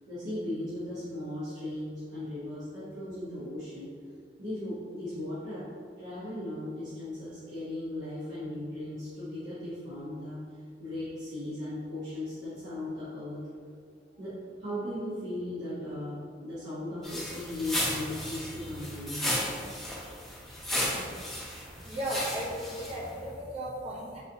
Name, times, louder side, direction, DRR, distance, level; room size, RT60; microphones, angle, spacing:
voice 1, 0.1-3.9 4.4-5.7 6.0-10.4 10.8-13.4 14.2-19.3, left 1 dB, 80° right, -13 dB, 1.1 m, -37 dB
sound 1, 17.0-23.2, left 1 dB, ahead, 0.7 m, -34 dB
voice 2, 21.9-24.2, equal, 35° right, -5 dB, 0.6 m, -35 dB
4.0 x 2.7 x 2.7 m, 2.2 s
head